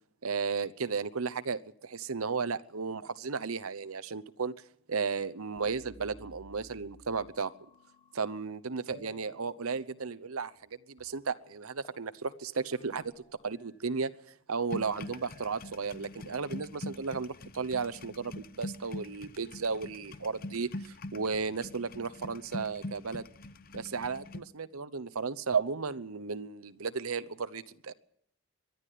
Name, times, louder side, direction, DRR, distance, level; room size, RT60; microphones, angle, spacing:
voice 1, 0.2-4.5 4.9-7.5 8.2-10.5 10.9-13.1 13.4-14.1 14.5-23.3 23.7-27.9, right 5 dB, 75° right, 13 dB, 0.9 m, -34 dB
sound 1, 5.6-8.5 8.9-10.7 11.0-11.1 11.4-11.6 11.8-12.0 12.3-14.0 14.8-16.3 17.1-18.0, right 1 dB, 25° left, 6.9 m, -57 dB
sound 2, 14.7-24.4, left 1 dB, 40° left, 0.8 m, -43 dB
23.5 x 12.0 x 9.4 m, 0.72 s
head